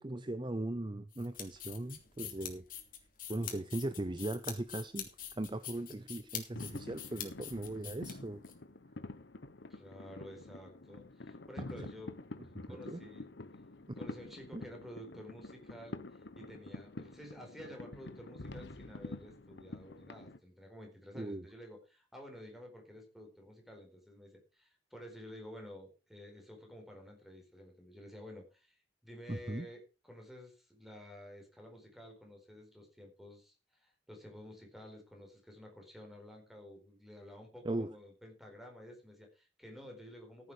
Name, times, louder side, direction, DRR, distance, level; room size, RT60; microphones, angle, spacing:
voice 1, 0.0-2.6 3.3-5.1 5.4-8.4 11.6-11.7 12.5-13.0 14.5-14.6 21.1-21.5 29.3-29.7 37.6-37.9, right 1 dB, 25° right, 13 dB, 0.7 m, -38 dB
sound 1, 1.1-8.5, left 10 dB, 50° left, 3.0 m, -45 dB
sound 2, 6.5-20.4, left 2 dB, 65° left, 1.0 m, -48 dB
voice 2, 9.7-12.1 12.4-13.3 13.9-40.5, left 1 dB, ahead, 2 dB, 4.5 m, -52 dB
14.5 x 8.4 x 5.0 m, 0.32 s
head